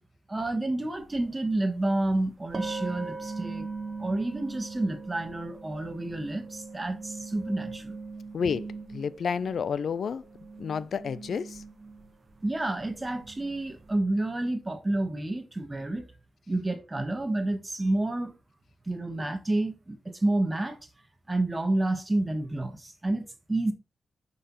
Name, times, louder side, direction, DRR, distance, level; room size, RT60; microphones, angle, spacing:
voice 1, 0.3-3.7 4.0-7.9 12.4-16.1 16.5-18.4 18.9-20.8 21.3-23.7, right 2 dB, 20° right, 1.3 m, -29 dB
sound 1, 1.0-1.1 2.5-9.9 10.2-13.9, right 4 dB, 35° right, 0.9 m, -40 dB
voice 2, 8.3-10.3 10.6-11.6, left 6 dB, 70° left, 0.3 m, -30 dB
5.7 x 5.4 x 4.0 m
cardioid pair, 90°, 0 cm